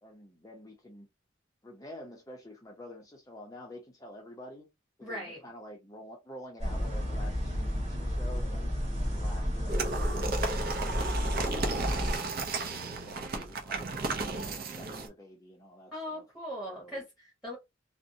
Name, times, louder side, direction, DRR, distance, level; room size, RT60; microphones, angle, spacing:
voice 1, 0.0-1.1 1.6-4.7 5.0-11.2 13.0-16.3 16.7-17.0, left 1 dB, 20° left, 0.6 m, -48 dB
voice 2, 5.0-5.4 15.9-17.6, equal, ahead, 1.1 m, -39 dB
sound 1, 6.6-12.2, equal, 35° right, 1.4 m, -31 dB
sound 2, 9.7-15.1, right 3 dB, 50° right, 0.5 m, -34 dB
2.6 x 2.1 x 2.6 m
head